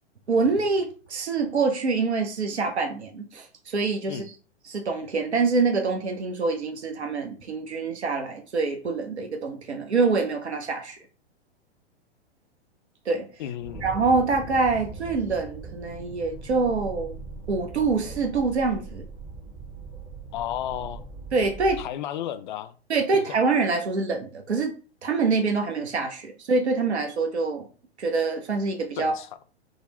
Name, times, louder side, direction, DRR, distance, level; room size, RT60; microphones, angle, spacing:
voice 1, 0.3-4.2 4.7-11.0 13.1-13.3 13.8-17.2 17.5-19.1 21.3-21.8 22.9-24.7 25.0-27.7 28.0-29.1, right 4 dB, 85° right, 0.7 m, -25 dB
voice 2, 13.4-13.9 20.3-21.0 21.8-22.8 23.1-23.4 29.0-29.3, left 11 dB, 50° left, 0.4 m, -33 dB
sound 1, 13.6-21.9, right 3 dB, 20° right, 0.6 m, -40 dB
3.7 x 2.0 x 3.2 m
figure-of-eight pair, 105°, 32 cm